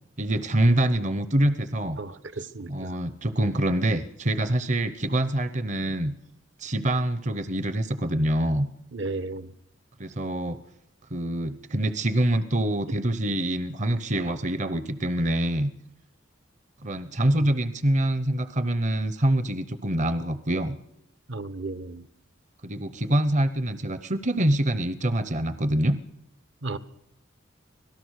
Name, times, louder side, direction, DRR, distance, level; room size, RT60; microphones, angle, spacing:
voice 1, 0.2-2.0 2.7-6.1 6.6-8.7 10.0-10.6 11.1-15.7 16.8-20.8 22.6-26.0, right 1 dB, 40° right, 0.8 m, -25 dB
voice 2, 2.0-2.9 8.9-9.5 21.3-22.0 26.6-26.8, right 3 dB, 65° right, 1.0 m, -34 dB
25.5 x 17.5 x 6.4 m
head